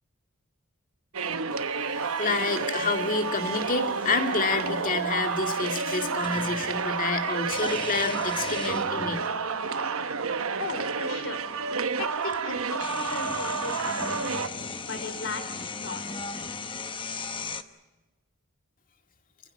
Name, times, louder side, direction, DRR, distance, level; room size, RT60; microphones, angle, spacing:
sound 1, 1.1-14.5, right 5 dB, 70° right, 1.0 m, -30 dB
voice 1, 1.9-9.2, left 3 dB, 40° left, 5 dB, 2.2 m, -28 dB
sound 2, 6.2-6.8 7.5-9.3 10.2-10.3 11.8-11.9 12.2-17.6, left 4 dB, 25° left, 0.9 m, -36 dB
voice 2, 10.6-11.4 12.0-14.4 14.8-16.4, left 3 dB, 60° left, 7 dB, 3.3 m, -37 dB
28.0 x 15.0 x 8.6 m, 1.2 s
head